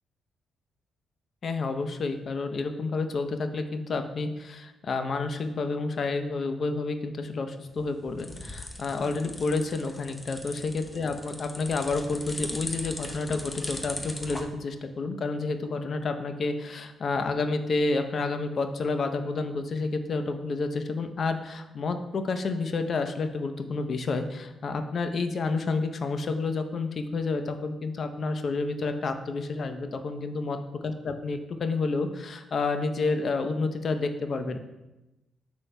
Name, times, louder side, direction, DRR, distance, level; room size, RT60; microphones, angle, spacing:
voice 1, 1.4-34.6, left 3 dB, 55° left, 8 dB, 0.7 m, -30 dB
sound 1, 7.7-14.4, left 1 dB, 15° left, 0.9 m, -39 dB
9.6 x 6.3 x 2.2 m, 1.0 s
cardioid pair, 70°, 0 cm